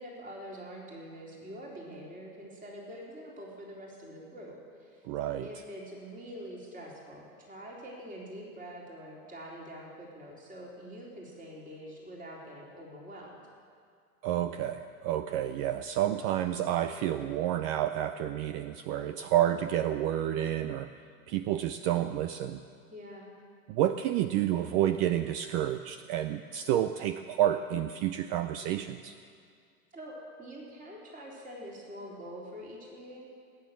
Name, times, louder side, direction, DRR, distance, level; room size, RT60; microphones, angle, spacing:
voice 1, 0.0-5.0 5.4-13.4 22.9-23.3 29.9-33.3, equal, 20° right, -3 dB, 3.8 m, -45 dB
voice 2, 5.0-5.5 14.2-20.9 21.3-22.6 23.7-29.2, right 12 dB, 40° right, 11 dB, 0.5 m, -29 dB
19.0 x 9.6 x 7.5 m, 2.2 s
hypercardioid pair, 115°, 45 cm